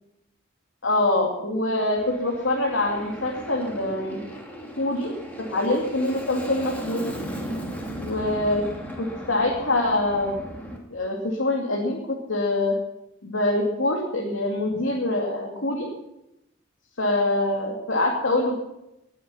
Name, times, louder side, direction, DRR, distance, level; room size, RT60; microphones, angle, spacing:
voice 1, 0.8-4.2 4.8-7.1 8.0-8.6 9.0-10.3 10.9-12.7 13.2-15.9 17.0-18.6, left 2 dB, 85° left, -2 dB, 2.8 m, -24 dB
Aircraft, 2.0-10.8, equal, 10° left, 2.6 m, -36 dB
20.0 x 8.7 x 7.2 m, 0.89 s
head